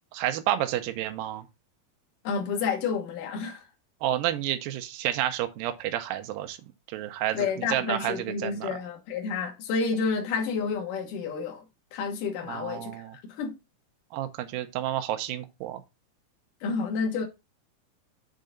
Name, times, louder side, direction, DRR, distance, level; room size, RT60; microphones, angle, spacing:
voice 1, 0.1-1.5 4.0-6.6 6.9-8.7 12.5-13.2 14.1-15.8, right 13 dB, 80° right, 2.4 m, -30 dB
voice 2, 2.2-3.7 7.3-11.6 11.9-13.0 13.3-13.5 16.6-17.3, left 5 dB, 65° left, 2.8 m, -30 dB
6.8 x 3.8 x 5.1 m
omnidirectional pair, 4.3 m